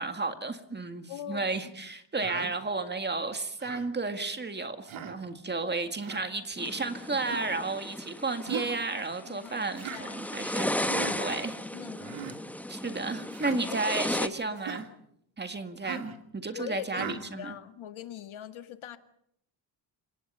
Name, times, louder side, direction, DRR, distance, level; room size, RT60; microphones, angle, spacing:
voice 1, 0.0-10.9 11.2-11.5 12.7-14.9 15.4-17.6, right 3 dB, 20° right, 8 dB, 1.9 m, -33 dB
voice 2, 1.1-1.7 2.2-2.3 5.6-5.7 9.3-10.4 10.8-11.4 11.7-12.2 13.5-13.9 14.2-14.4 16.5-19.0, left 12 dB, 85° left, 9 dB, 1.9 m, -42 dB
Human voice, 2.2-2.5 3.6-3.9 4.9-5.2 6.0-6.2 7.3-7.5 8.5-8.8 9.8-10.0 10.8-11.2 12.0-12.4 13.3-13.6 14.6-14.9 15.8-16.1 16.9-17.2, right 7 dB, 85° right, 2.7 m, -38 dB
sound 1, 6.6-14.3, left 1 dB, 5° left, 0.9 m, -35 dB
29.5 x 18.5 x 5.7 m, 0.73 s
wide cardioid pair, 165°, 47 cm